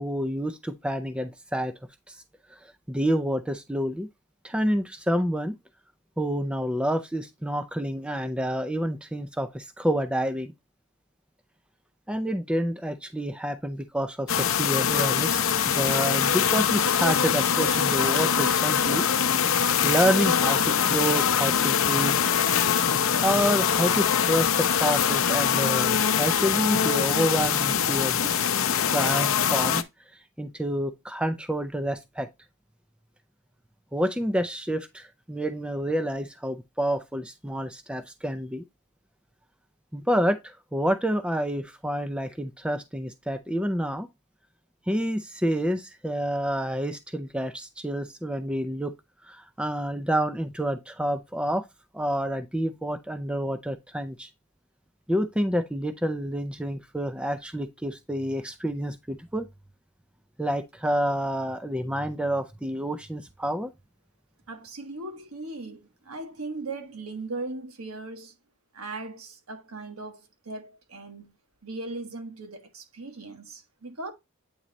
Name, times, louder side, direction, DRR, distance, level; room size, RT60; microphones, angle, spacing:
voice 1, 0.0-1.8 2.1-2.2 2.5-4.1 4.4-5.5 6.2-10.5 12.1-15.4 15.7-19.1 19.8-22.2 23.2-29.8 30.4-32.3 33.9-38.6 39.9-44.1 44.9-48.9 49.3-51.6 51.9-54.3 55.1-59.5 60.4-63.7, equal, 5° right, 0.4 m, -28 dB
sound 1, 14.3-29.8, left 8 dB, 65° left, 0.6 m, -23 dB
voice 2, 64.5-68.3 68.7-71.3 71.6-74.1, right 2 dB, 75° right, 1.4 m, -38 dB
8.7 x 3.1 x 4.0 m
head